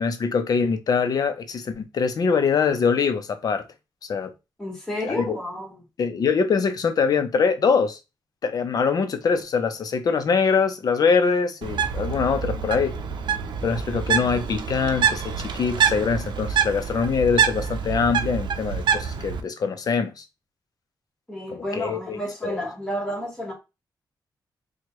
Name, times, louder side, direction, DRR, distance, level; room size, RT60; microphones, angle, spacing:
voice 1, 0.0-3.7 4.1-4.3 5.0-5.4 6.0-8.0 8.4-12.9 13.6-20.2 21.5-22.6, left 5 dB, 55° left, 0.7 m, -23 dB
voice 2, 4.6-5.7 21.3-23.5, equal, 10° left, 1.5 m, -31 dB
Bird, 11.6-19.4, right 7 dB, 85° right, 0.6 m, -26 dB
4.5 x 2.3 x 3.0 m
wide cardioid pair, 150°, 8 cm